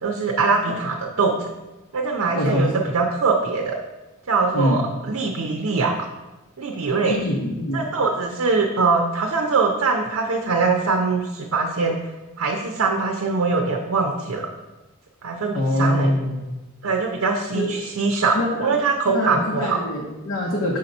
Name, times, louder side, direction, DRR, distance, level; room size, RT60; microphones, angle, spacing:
voice 1, 0.0-1.5 1.9-3.8 4.3-5.9 6.6-7.2 7.7-12.0 12.4-14.5 15.2-16.2 16.8-19.8, right 4 dB, 80° right, 0 dB, 0.6 m, -22 dB
voice 2, 2.3-2.7 4.5-4.8 7.0-7.8 15.5-16.4 17.5-17.8 18.3-18.8 19.1-20.8, left 1 dB, 65° left, -2 dB, 0.8 m, -24 dB
6.4 x 2.8 x 5.2 m, 1.1 s
head